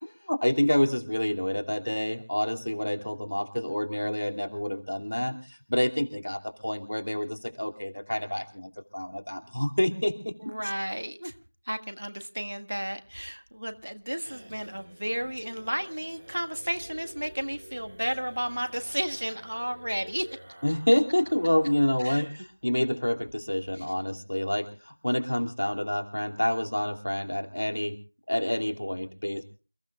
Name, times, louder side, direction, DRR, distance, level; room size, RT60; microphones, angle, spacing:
voice 1, 0.0-10.3 20.6-28.0 28.3-29.4, left 1 dB, 55° left, 5 dB, 2.6 m, -28 dB
voice 2, 10.4-11.3 11.7-20.3 22.0-22.3 23.8-23.9, equal, 60° right, 8 dB, 1.7 m, -33 dB
sound 1, 13.0-22.1 22.4-22.5 22.8-22.9 23.2-23.7, right 1 dB, 20° right, 2.6 m, -50 dB
28.5 x 16.0 x 2.3 m, 0.33 s
figure-of-eight pair, 180°, 0 cm